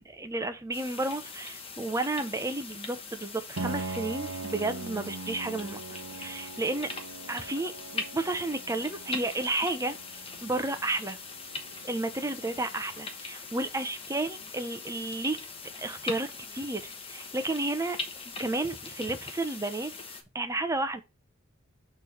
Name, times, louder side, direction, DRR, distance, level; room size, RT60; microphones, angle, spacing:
voice 1, 0.0-6.9 7.3-10.0 10.4-11.2 11.8-15.4 15.8-18.0 18.4-19.9 20.3-21.0, right 2 dB, 15° right, 0.8 m, -32 dB
sound 1, 0.7-20.2, left 4 dB, 30° left, 1.2 m, -41 dB
Piano, 3.6-13.1, right 3 dB, 70° right, 0.7 m, -42 dB
6.7 x 3.4 x 5.6 m
head